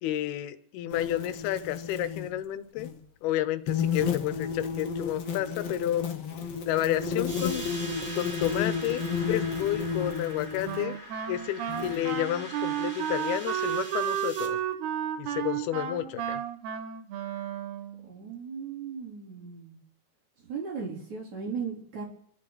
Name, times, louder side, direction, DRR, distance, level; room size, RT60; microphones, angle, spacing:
voice 1, 0.0-2.9 3.2-6.0 6.6-7.7 8.2-11.0 11.3-14.6 15.2-16.4, left 13 dB, 85° left, 12 dB, 2.8 m, -31 dB
sound 1, 0.9-2.3 2.8-3.0 3.7-10.9 11.7-12.2, left 6 dB, 60° left, 1.6 m, -32 dB
sound 2, 7.3-14.5, right 1 dB, 20° right, 2.4 m, -43 dB
Wind instrument woodwind instrument, 10.7-18.1, right 9 dB, 90° right, 3.1 m, -32 dB
voice 2, 18.0-19.8 20.4-22.0, right 6 dB, 50° right, -2 dB, 4.6 m, -38 dB
29.5 x 11.5 x 4.1 m, 0.64 s
omnidirectional pair, 4.4 m